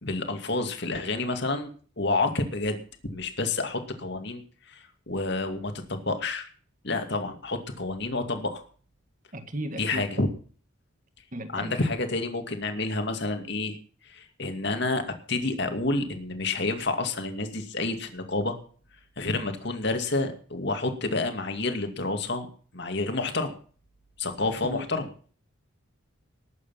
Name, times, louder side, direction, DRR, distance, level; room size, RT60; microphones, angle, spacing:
voice 1, 0.0-1.7 2.0-2.8 3.0-4.4 4.7-6.5 6.8-8.6 9.7-10.3 11.5-13.8 14.0-18.6 19.2-22.5 22.7-23.6 24.2-25.1, left 2 dB, 55° left, 2.4 m, -29 dB
voice 2, 9.3-10.0 11.3-11.8 24.5-24.9, equal, 40° right, 1.9 m, -35 dB
20.0 x 8.4 x 5.8 m
head